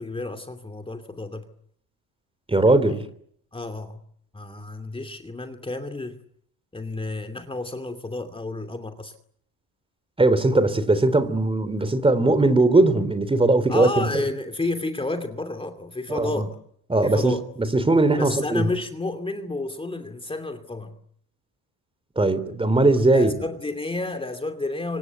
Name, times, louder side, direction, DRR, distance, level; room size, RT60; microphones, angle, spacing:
voice 1, 0.0-1.4 3.5-4.0 4.3-6.2 6.7-9.1 13.7-16.6 17.0-17.4 18.2-20.9 23.1-25.0, left 2 dB, 15° left, 2.7 m, -31 dB
voice 2, 2.5-3.0 10.2-14.2 16.1-16.5 16.9-17.3 17.7-18.7 22.1-23.3, right 2 dB, 15° right, 3.3 m, -19 dB
26.0 x 26.0 x 8.3 m
cardioid pair, 100°, 37 cm